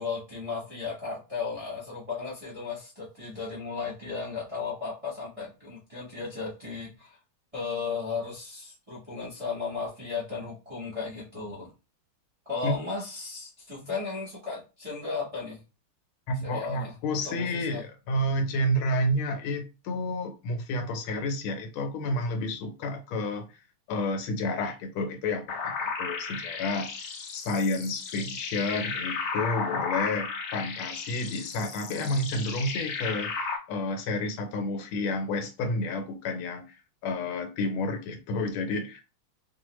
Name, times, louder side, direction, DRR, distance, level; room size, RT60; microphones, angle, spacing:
voice 1, 0.0-7.2 7.5-11.7 12.5-15.6 16.4-16.9 17.2-17.8, left 4 dB, 25° right, 0.7 m, -35 dB
voice 2, 16.3-23.6 23.9-39.0, left 1 dB, 85° left, 1.5 m, -30 dB
sound 1, 25.5-33.6, left 5 dB, 70° left, 0.9 m, -34 dB
3.2 x 2.2 x 3.0 m
omnidirectional pair, 2.2 m